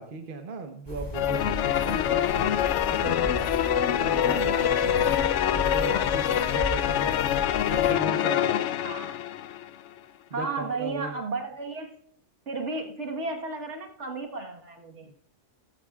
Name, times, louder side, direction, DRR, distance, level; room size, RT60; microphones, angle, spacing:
voice 1, 0.0-2.5 2.9-3.3 3.7-5.3 5.6-8.7 10.3-11.2 15.0-15.1, right 3 dB, 45° right, 5 dB, 1.1 m, -38 dB
sound 1, 0.9-7.9, equal, 20° left, 2.6 m, -37 dB
sound 2, 1.1-9.7, left 10 dB, 75° left, 0.9 m, -25 dB
sound 3, 1.6-6.8, left 2 dB, 15° right, 3.1 m, -45 dB
voice 2, 4.3-4.6 8.8-9.2 10.3-12.0 12.5-15.1, right 3 dB, 65° right, 2 dB, 1.8 m, -34 dB
14.5 x 13.5 x 2.4 m, 0.63 s
omnidirectional pair, 1.3 m